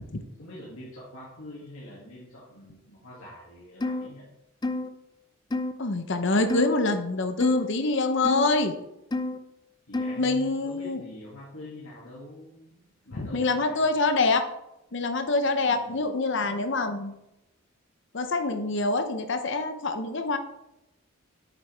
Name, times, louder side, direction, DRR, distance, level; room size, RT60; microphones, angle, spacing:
voice 1, 0.0-4.3 9.9-12.8 13.0-14.0 15.7-16.0, left 1 dB, 85° left, -7 dB, 2.3 m, -45 dB
sound 1, 3.8-4.1 4.6-4.9 5.5-5.7 6.5-6.8 7.4-7.7 8.2-8.5 9.1-9.4 9.9-10.2, left 2 dB, 20° left, 0.5 m, -29 dB
voice 2, 5.8-8.7 10.2-11.0 13.1-14.4 14.9-17.1 18.1-20.4, left 3 dB, 60° left, 7 dB, 0.7 m, -25 dB
9.2 x 6.7 x 3.4 m, 0.90 s
head